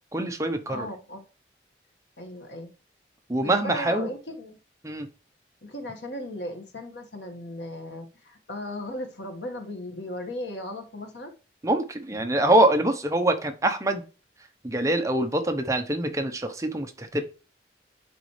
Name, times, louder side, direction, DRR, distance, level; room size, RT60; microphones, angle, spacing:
voice 1, 0.1-0.9 3.3-4.1 4.8-5.1 11.6-14.0 14.6-17.2, right 1 dB, 15° right, 0.8 m, -24 dB
voice 2, 0.7-1.2 2.2-2.7 3.4-4.6 5.6-11.3, left 1 dB, 75° left, 1.7 m, -36 dB
10.5 x 4.2 x 3.2 m
head